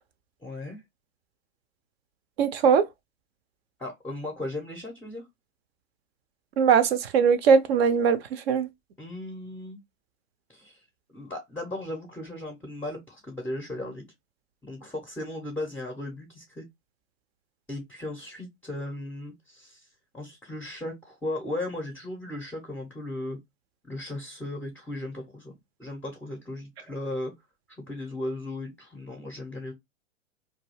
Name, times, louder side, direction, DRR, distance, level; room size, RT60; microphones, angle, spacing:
voice 1, 0.4-0.8 3.8-5.2 9.0-9.8 10.5-10.8 11.1-14.1 14.6-16.6 17.7-19.9 20.1-23.4 23.8-27.3 27.8-29.7, left 1 dB, 5° left, 0.5 m, -36 dB
voice 2, 2.4-2.8 6.6-8.2 8.5-8.7, right 6 dB, 50° right, 0.5 m, -20 dB
2.3 x 2.3 x 3.1 m
hypercardioid pair, 105°, 41 cm